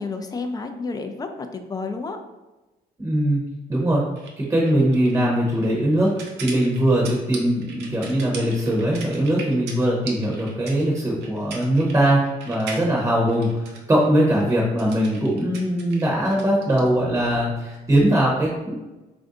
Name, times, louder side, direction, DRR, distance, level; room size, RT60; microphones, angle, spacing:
voice 1, 0.0-2.2, left 4 dB, 25° left, 6 dB, 0.4 m, -30 dB
voice 2, 3.0-3.4 3.7-4.0 4.4-6.1 6.4-18.8, right 1 dB, 15° right, -3 dB, 0.8 m, -21 dB
sound 1, 4.2-16.9, right 4 dB, 80° right, 0.7 m, -40 dB
3.3 x 2.6 x 3.8 m, 1.1 s
cardioid pair, 110°, 17 cm